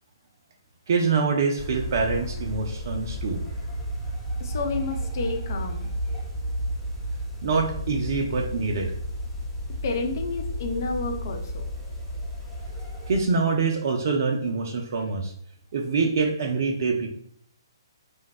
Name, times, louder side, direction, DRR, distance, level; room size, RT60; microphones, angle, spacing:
voice 1, 0.9-3.4 7.4-8.9 13.1-15.3 15.7-17.1, right 4 dB, 45° right, 2 dB, 0.4 m, -25 dB
sound 1, 1.6-13.2, equal, 5° left, 0.7 m, -32 dB
voice 2, 4.4-5.9 9.8-11.6, left 3 dB, 45° left, 4 dB, 0.5 m, -30 dB
2.6 x 2.2 x 3.7 m, 0.62 s
figure-of-eight pair, 130°, 2 cm